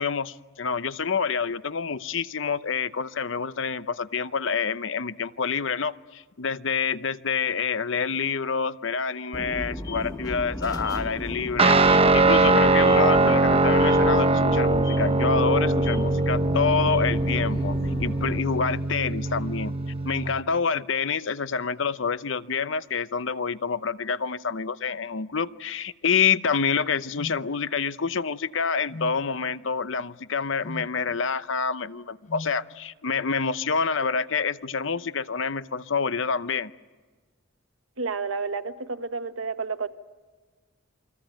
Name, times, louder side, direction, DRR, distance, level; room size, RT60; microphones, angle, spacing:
voice 1, 0.0-19.7 20.0-36.7, left 5 dB, 60° left, 14 dB, 0.8 m, -27 dB
sound 1, 9.3-18.4, equal, 20° left, 1.4 m, -35 dB
Guitar, 11.6-20.4, right 2 dB, 30° right, 0.8 m, -21 dB
sound 2, 27.2-27.4 28.9-29.2 30.6-30.9 32.3-32.6, left 2 dB, 35° left, 0.9 m, -37 dB
voice 2, 38.0-39.9, right 4 dB, 80° right, 9 dB, 1.4 m, -30 dB
28.5 x 23.0 x 9.1 m, 1.4 s
head